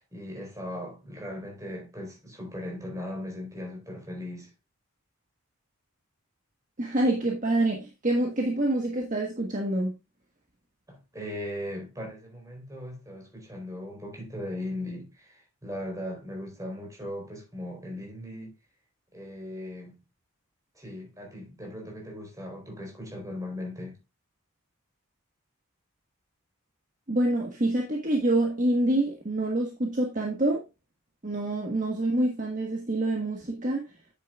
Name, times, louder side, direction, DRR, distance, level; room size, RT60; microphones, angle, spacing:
voice 1, 0.0-4.5 10.9-18.6 19.1-20.0 20.7-24.0, left 1 dB, 15° right, 4.1 m, -38 dB
voice 2, 6.8-9.9 27.1-30.6 31.2-33.9, right 1 dB, 35° right, 1.4 m, -26 dB
9.5 x 8.4 x 2.4 m
head